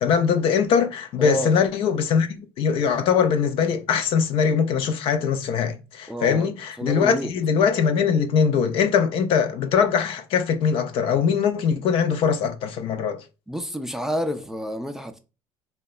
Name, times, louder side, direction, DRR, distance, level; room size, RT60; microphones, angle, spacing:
voice 1, 0.0-13.2, left 6 dB, 65° left, 0.4 m, -22 dB
voice 2, 1.2-1.5 6.1-6.5 6.8-7.3 13.5-15.2, equal, 5° right, 0.3 m, -29 dB
2.8 x 2.1 x 2.3 m
cardioid pair, 105°, 10 cm